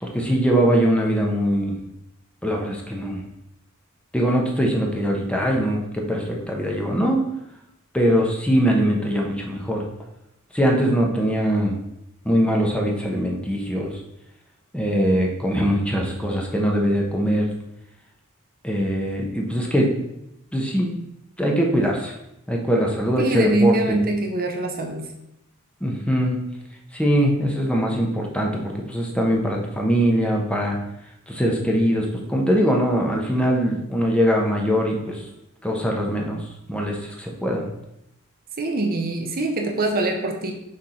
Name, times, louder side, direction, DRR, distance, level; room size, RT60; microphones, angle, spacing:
voice 1, 0.0-1.7 2.4-3.2 4.1-7.2 7.9-9.8 10.5-11.7 12.2-13.9 14.7-17.5 18.6-19.9 20.5-20.9 21.4-22.1 22.5-24.0 25.8-26.4 26.9-30.8 31.3-35.2 35.6-36.4 36.7-37.7, equal, 5° left, 0 dB, 1.0 m, -22 dB
voice 2, 23.2-25.1 38.6-40.5, right 2 dB, 45° right, 3 dB, 0.7 m, -23 dB
6.2 x 3.6 x 4.3 m, 0.83 s
head